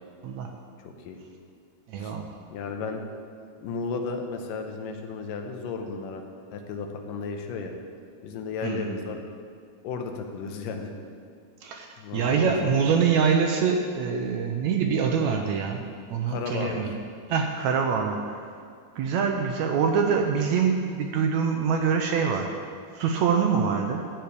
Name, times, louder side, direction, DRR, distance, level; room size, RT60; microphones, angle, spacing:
voice 1, 0.8-1.2 2.0-2.1 2.5-3.0 3.6-6.2 6.5-7.7 8.2-9.2 9.8-10.9 12.0-12.7 16.3-17.0, left 4 dB, 90° left, 4 dB, 2.6 m, -34 dB
voice 2, 1.9-2.3 8.6-9.0 11.6-15.8 16.1-16.9 17.3-18.4 19.0-22.6 22.9-24.1, right 6 dB, 75° right, 3 dB, 1.8 m, -25 dB
13.0 x 4.6 x 8.4 m, 2.2 s
omnidirectional pair, 3.7 m